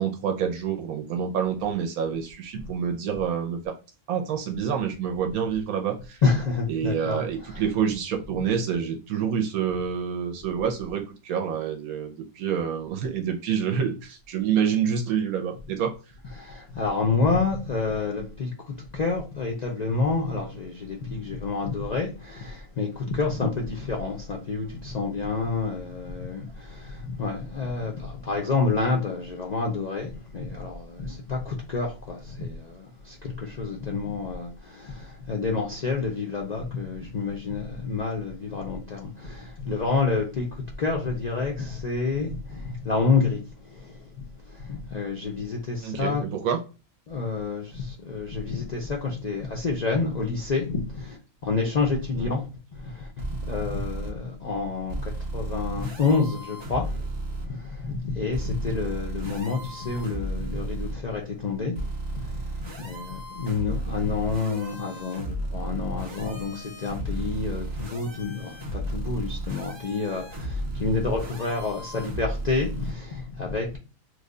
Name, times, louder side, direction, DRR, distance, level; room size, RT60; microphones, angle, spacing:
voice 1, 0.0-3.8 4.1-6.2 6.7-15.9 45.8-46.6 52.2-52.3 63.7-64.0, right 7 dB, 80° right, 1.0 m, -27 dB
voice 2, 6.2-7.6 16.4-43.4 43.6-44.2 44.4-46.2 47.1-51.2 51.4-52.5 52.7-57.1 57.4-73.8, left 4 dB, 80° left, 0.3 m, -29 dB
sound 1, 53.2-54.1 54.9-57.5 58.3-60.9 61.7-72.9, right 1 dB, 30° right, 0.5 m, -34 dB
3.2 x 2.2 x 3.6 m
omnidirectional pair, 1.5 m